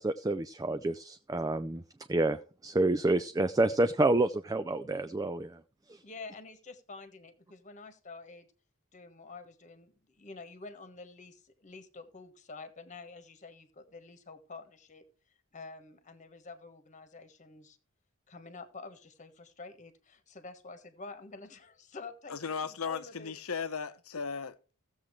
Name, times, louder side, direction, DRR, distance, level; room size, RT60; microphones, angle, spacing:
voice 1, 0.0-1.8 2.1-5.6 5.9-6.0, right 2 dB, 15° right, 0.4 m, -28 dB
voice 2, 6.0-8.5 8.9-15.0 15.5-17.8 18.3-23.3, left 3 dB, 35° left, 1.3 m, -48 dB
voice 3, 22.3-24.7, left 5 dB, 85° left, 0.9 m, -36 dB
16.0 x 7.3 x 3.2 m
head